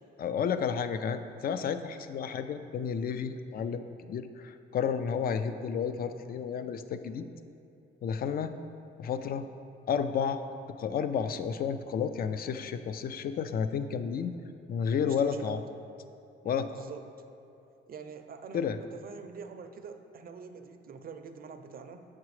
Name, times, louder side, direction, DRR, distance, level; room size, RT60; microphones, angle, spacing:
voice 1, 0.2-7.2 8.0-8.5 9.0-9.4 9.9-10.4 10.8-14.3 14.7-15.6 16.4-16.7 18.5-18.8, left 7 dB, 50° left, 10 dB, 0.4 m, -31 dB
voice 2, 15.0-15.6 16.4-17.1 17.9-22.1, right 5 dB, 50° right, 7 dB, 0.5 m, -45 dB
7.4 x 6.0 x 3.2 m, 2.6 s
cardioid pair, 90°, 20 cm